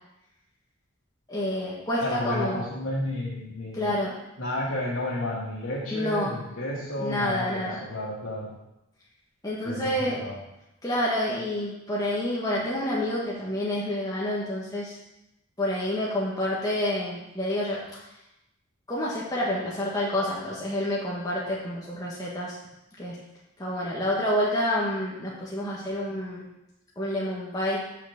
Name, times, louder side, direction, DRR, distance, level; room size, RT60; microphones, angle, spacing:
voice 1, 1.3-2.6 3.7-4.1 5.9-6.3 7.0-7.8 9.4-10.2 10.8-15.0 15.6-18.1 18.9-22.6 23.0-23.2 23.6-26.5 27.0-27.8, left 1 dB, 15° left, -5 dB, 1.4 m, -28 dB
voice 2, 2.0-3.9 4.4-8.5 9.6-10.3, left 1 dB, 85° left, -9 dB, 2.2 m, -31 dB
6.6 x 5.9 x 7.0 m, 0.89 s
head